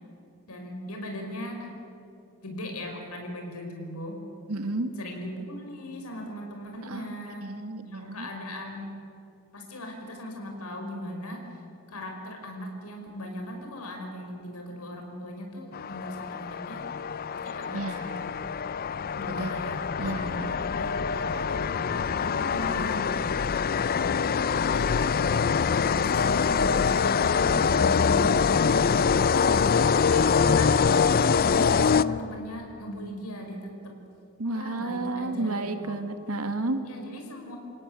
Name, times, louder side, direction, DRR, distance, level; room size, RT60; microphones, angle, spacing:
voice 1, 0.5-1.8 2.4-4.2 5.0-7.5 7.8-8.9 9.5-11.5 11.9-16.9 17.3-18.3 19.1-19.9 20.7-23.3 24.5-25.0 25.9-29.2 30.0-30.8 31.2-34.0 34.5-36.0 36.9-37.6, left 1 dB, 85° left, 3 dB, 5.3 m, -38 dB
voice 2, 4.5-4.9 6.8-7.1 7.4-8.3 17.7-18.2 19.3-19.6 20.0-20.6 34.4-36.8, right 2 dB, 80° right, 8 dB, 2.0 m, -32 dB
sound 1, 15.7-32.5, left 6 dB, 40° left, 0.5 m, -24 dB
29.0 x 17.5 x 8.7 m, 2.8 s
head